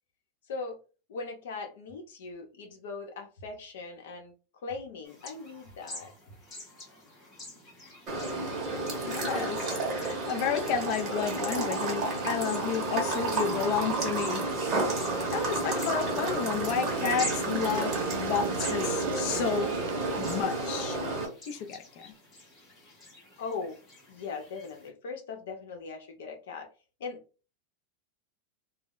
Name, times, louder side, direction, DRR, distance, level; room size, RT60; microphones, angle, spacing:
voice 1, 0.5-0.8 1.1-4.3 4.6-6.1 23.4-23.8 24.1-26.7 27.0-27.2, left 4 dB, 70° left, 0.7 m, -39 dB
sound 1, 5.0-24.9, left 1 dB, 15° left, 0.8 m, -47 dB
sound 2, 8.1-21.3, right 2 dB, 25° right, 0.7 m, -31 dB
voice 2, 9.1-14.7 15.3-19.8 20.2-21.0 21.5-22.1, left 7 dB, 40° left, 0.4 m, -32 dB
sound 3, 13.1-20.4, right 7 dB, 65° right, 0.4 m, -39 dB
2.1 x 2.1 x 3.6 m
supercardioid pair, 180°, 0 cm